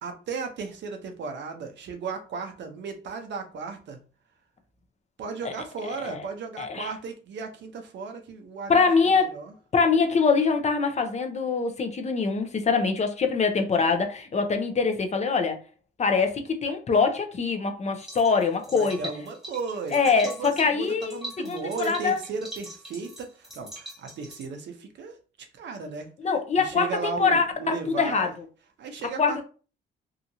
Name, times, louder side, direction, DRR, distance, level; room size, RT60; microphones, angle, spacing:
voice 1, 0.0-4.0 5.2-8.8 9.1-9.5 18.7-25.2 25.6-26.1 26.6-28.3 28.8-29.4, right 5 dB, 65° right, 0.7 m, -35 dB
voice 2, 5.9-6.2 6.6-6.9 8.7-9.4 9.7-15.6 16.0-19.0 19.9-22.2 26.2-28.4 29.2-29.4, left 5 dB, 35° left, 0.5 m, -24 dB
sound 1, 18.0-24.5, right 1 dB, ahead, 1.0 m, -42 dB
2.8 x 2.4 x 2.7 m
cardioid pair, 90°, 20 cm